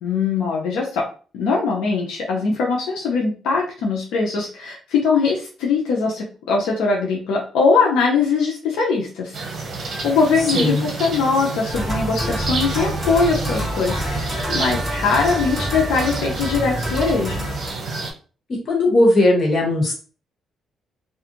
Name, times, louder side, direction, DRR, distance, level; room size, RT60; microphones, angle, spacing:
voice 1, 0.0-1.1 1.3-9.4 10.0-17.5, left 4 dB, 90° left, -1 dB, 0.5 m, -21 dB
sound 1, 9.3-18.1, right 3 dB, 50° right, 0.8 m, -29 dB
sound 2, 11.7-17.7, equal, 20° left, 1.3 m, -27 dB
voice 2, 18.7-19.9, left 1 dB, 45° left, -2 dB, 1.4 m, -17 dB
2.5 x 2.3 x 2.8 m, 0.39 s
cardioid pair, 90°, 0 cm